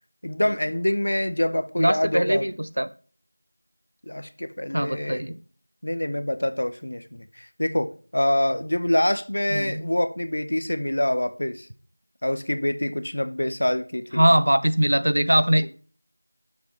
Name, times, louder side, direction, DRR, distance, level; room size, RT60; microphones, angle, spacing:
voice 1, 0.2-2.5 4.1-5.2 5.8-11.7 12.2-14.3, left 1 dB, 30° left, 0.6 m, -25 dB
voice 2, 1.8-2.9 4.7-5.4 9.5-9.8 14.1-15.7, equal, 40° right, 0.5 m, -21 dB
10.5 x 7.4 x 2.9 m
figure-of-eight pair, 180°, 0 cm